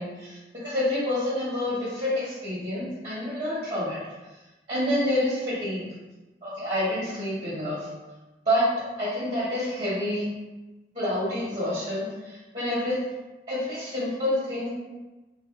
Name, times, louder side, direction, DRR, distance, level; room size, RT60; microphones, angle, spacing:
voice 1, 0.0-4.0 4.7-5.8 6.4-7.9 8.4-8.7 9.0-10.3 10.9-13.0 13.5-14.7, left 1 dB, 30° right, -9 dB, 0.9 m, -28 dB
3.3 x 2.1 x 2.8 m, 1.1 s
head